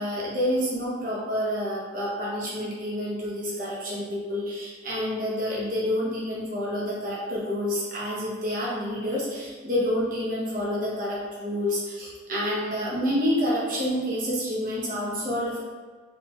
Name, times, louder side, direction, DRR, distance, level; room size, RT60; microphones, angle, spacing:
voice 1, 0.0-15.6, equal, 45° right, -6 dB, 1.1 m, -28 dB
4.3 x 3.9 x 2.5 m, 1.5 s
head